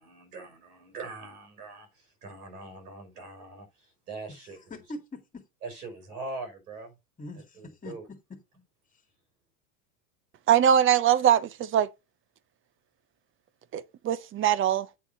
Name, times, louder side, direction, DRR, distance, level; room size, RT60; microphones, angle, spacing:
voice 1, 0.0-4.8 5.6-6.9 7.4-8.1, right 3 dB, 80° right, 5.5 m, -42 dB
voice 2, 4.4-5.4 7.2-8.4, left 2 dB, 20° left, 2.1 m, -43 dB
voice 3, 10.5-11.9 13.7-14.9, right 9 dB, 25° right, 0.8 m, -22 dB
8.5 x 3.6 x 6.5 m
supercardioid pair, 120°, 45 cm